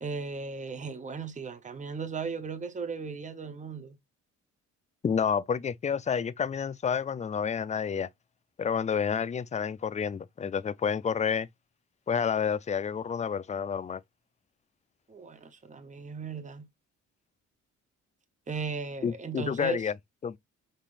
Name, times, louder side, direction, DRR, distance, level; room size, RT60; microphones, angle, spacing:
voice 1, 0.0-4.0 15.1-16.7 18.5-19.9, right 5 dB, 25° right, 1.0 m, -37 dB
voice 2, 5.0-8.1 8.6-11.5 12.1-14.0 19.0-19.9 20.2-20.4, left 7 dB, 25° left, 0.4 m, -29 dB
5.7 x 3.6 x 2.5 m
cardioid pair, 90°, 30 cm